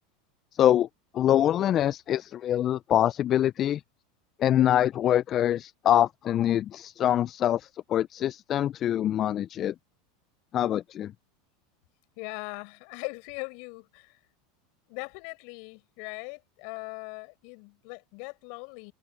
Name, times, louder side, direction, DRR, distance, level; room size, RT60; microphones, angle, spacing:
voice 1, 0.6-0.9 1.1-3.8 4.4-9.7 10.5-11.1, left 11 dB, 40° left, 0.6 m, -24 dB
voice 2, 12.2-14.2 14.9-18.9, left 39 dB, 60° left, 7.0 m, -40 dB
hypercardioid pair, 90°, 0 cm